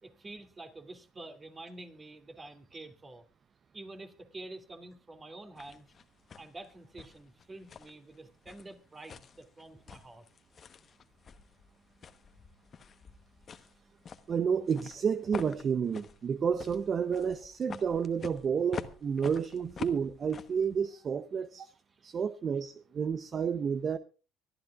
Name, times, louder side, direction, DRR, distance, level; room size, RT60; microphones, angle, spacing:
voice 1, 0.0-3.2 3.7-5.9 6.3-10.2, right 2 dB, 25° right, 2.6 m, -48 dB
sound 1, 5.6-20.8, left 6 dB, 40° left, 1.1 m, -47 dB
voice 2, 14.3-21.7 22.0-24.0, right 6 dB, 40° right, 0.7 m, -30 dB
24.5 x 12.0 x 2.4 m
supercardioid pair, 85°, 0 cm